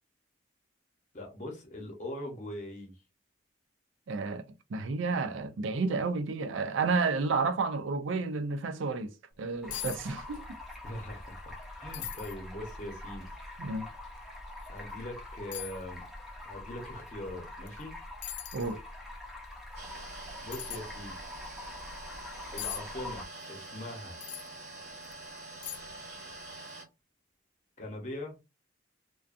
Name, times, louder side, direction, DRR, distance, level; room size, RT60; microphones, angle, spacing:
voice 1, 1.1-2.9 10.8-13.4 14.7-16.0 16.4-17.9 20.4-21.2 22.5-24.2 27.8-28.4, left 1 dB, 40° left, 0.8 m, -41 dB
voice 2, 4.1-4.4 4.7-9.1 9.4-10.4 13.6-13.9 18.5-18.8, right 4 dB, 85° right, 0.4 m, -31 dB
sound 1, 9.3-9.4 9.7-10.0 10.3-10.8 11.2-11.3 11.9-12.4 13.0-13.1 14.6-14.7 15.5-15.8 17.7-17.8 18.2-18.7 20.5-20.8 22.6-22.8 24.2-24.5 25.0-25.1 25.6-26.0 26.3-26.4, left 11 dB, 65° left, 0.4 m, -39 dB
Stream, 9.6-23.2, left 2 dB, ahead, 0.6 m, -45 dB
sound 2, 19.8-26.8, right 2 dB, 55° right, 1.1 m, -45 dB
2.5 x 2.2 x 2.4 m
head